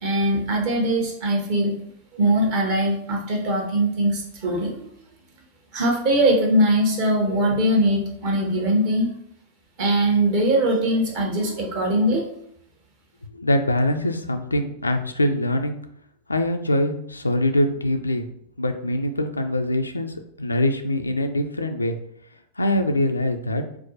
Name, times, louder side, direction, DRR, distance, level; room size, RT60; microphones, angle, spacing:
voice 1, 0.0-1.8 2.1-4.8 5.7-9.1 9.8-12.3, right 1 dB, 45° right, 1 dB, 1.0 m, -21 dB
voice 2, 13.3-15.8 16.3-18.2 18.6-22.0 22.6-23.6, left 1 dB, 80° left, 7 dB, 0.3 m, -23 dB
4.5 x 2.1 x 2.7 m, 0.69 s
figure-of-eight pair, 90°, 0 cm